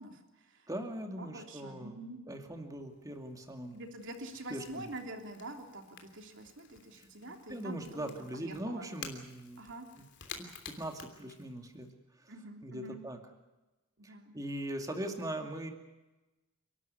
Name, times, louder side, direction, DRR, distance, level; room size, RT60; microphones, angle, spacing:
voice 1, 0.0-0.7 1.2-2.2 3.7-8.1 8.4-8.9 9.6-9.9 12.3-13.0 14.0-14.3, right 1 dB, 55° right, 4 dB, 3.3 m, -46 dB
voice 2, 0.7-2.0 2.3-3.8 4.5-4.9 7.0-9.6 10.0-10.1 10.4-12.3 12.6-13.2 14.0-15.7, right 1 dB, 15° right, 4 dB, 2.4 m, -41 dB
Crackle / Crack, 2.4-11.9, left 6 dB, 50° left, 3.1 m, -52 dB
29.5 x 12.5 x 9.6 m, 1.1 s
head